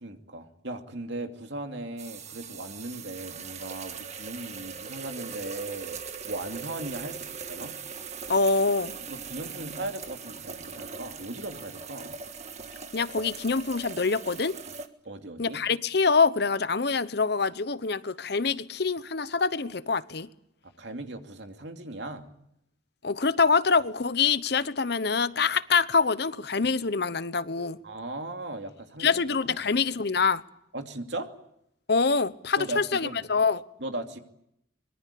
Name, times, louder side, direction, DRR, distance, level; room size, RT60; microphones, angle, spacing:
voice 1, 0.0-6.0 6.2-7.7 9.1-12.2 15.0-15.6 20.6-22.3 27.8-29.2 29.5-29.7 30.7-31.3 32.6-33.2 33.8-34.2, right 2 dB, 65° right, 2.7 m, -38 dB
sound 1, 2.0-14.9, right 6 dB, 35° right, 1.7 m, -40 dB
voice 2, 8.3-8.9 12.9-14.5 15.4-20.3 23.0-27.8 29.0-30.4 31.9-33.6, left 4 dB, 55° left, 0.9 m, -25 dB
24.5 x 23.0 x 8.4 m
head